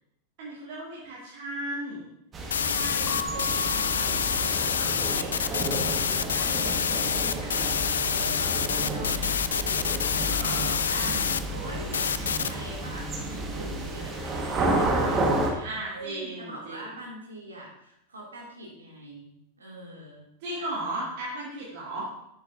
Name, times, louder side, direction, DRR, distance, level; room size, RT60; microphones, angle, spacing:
voice 1, 0.4-2.1 2.8-3.2 10.1-10.8 15.6-16.8 20.4-22.1, right 1 dB, 50° right, -6 dB, 2.3 m, -35 dB
sound 1, 2.3-15.5, right 2 dB, 25° right, 1.4 m, -31 dB
sound 2, 2.5-11.4 11.9-12.5, left 7 dB, 65° left, 0.4 m, -27 dB
voice 2, 2.5-10.0 10.5-11.2 11.5-20.3 20.5-20.7, right 1 dB, 75° right, -3 dB, 2.5 m, -43 dB
Keyboard (musical) / Bell, 3.0-5.5, equal, 20° left, 2.8 m, -39 dB
10.5 x 8.1 x 2.6 m, 0.79 s
figure-of-eight pair, 90°, 0 cm